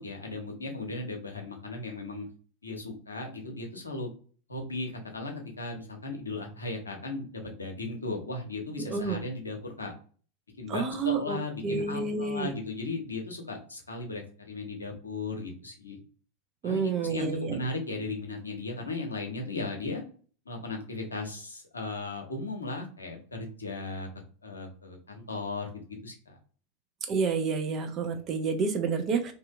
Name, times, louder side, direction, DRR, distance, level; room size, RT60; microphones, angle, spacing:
voice 1, 0.0-2.3 2.6-4.1 4.5-9.9 10.6-16.0 16.6-20.0 20.5-24.1 24.4-25.7 26.0-26.4, left 3 dB, 80° left, 3 dB, 0.7 m, -36 dB
voice 2, 8.8-9.2 10.7-12.5 16.6-17.6 27.1-29.3, right 5 dB, 35° right, 6 dB, 0.5 m, -29 dB
2.7 x 2.5 x 2.2 m, 0.40 s
figure-of-eight pair, 85°, 0 cm